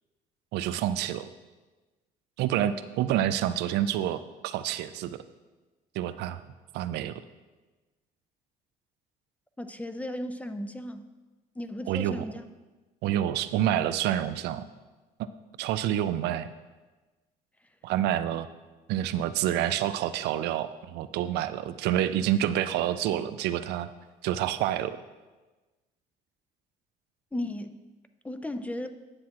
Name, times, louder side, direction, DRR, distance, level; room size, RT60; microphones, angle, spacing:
voice 1, 0.5-1.3 2.4-5.2 5.9-6.4 6.7-7.1 11.9-12.2 13.0-14.6 15.6-16.5 17.8-18.5 18.9-23.9 24.2-25.0, right 11 dB, 80° right, 12 dB, 0.4 m, -28 dB
voice 2, 9.6-11.1 11.6-12.5 27.3-27.8 28.2-28.9, left 1 dB, 10° left, 9 dB, 0.4 m, -35 dB
9.6 x 7.2 x 2.9 m, 1.2 s
cardioid pair, 110°, 17 cm